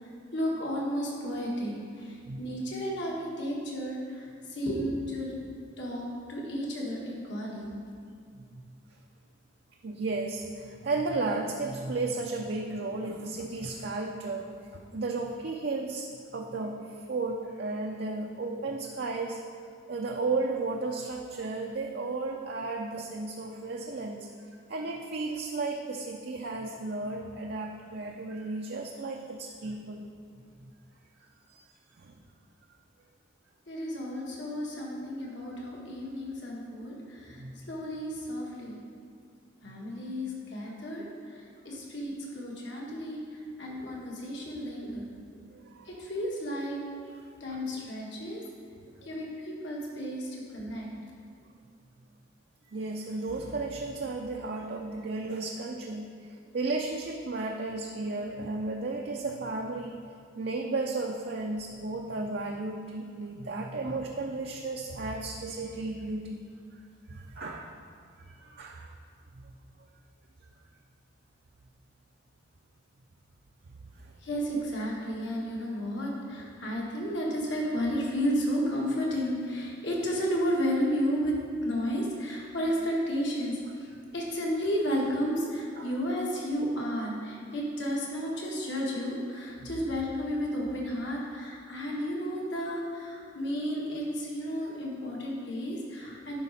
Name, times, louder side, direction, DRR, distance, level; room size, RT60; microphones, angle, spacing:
voice 1, 0.0-5.3 5.8-7.8 33.7-38.8 39.6-45.1 45.9-46.8 47.4-48.4 49.0-50.9 74.2-96.4, equal, 65° left, -3 dB, 1.7 m, -32 dB
voice 2, 9.8-19.4 19.9-24.3 24.7-30.1 30.6-30.7 31.5-31.6 32.0-32.2 37.4-37.5 45.5-45.9 47.5-47.6 52.7-60.0 60.4-66.4 67.1-67.8 68.2-68.9 74.0-74.1 85.8-85.9 89.6-89.7, right 3 dB, 55° right, 1 dB, 0.5 m, -34 dB
11.0 x 5.2 x 4.2 m, 2.2 s
head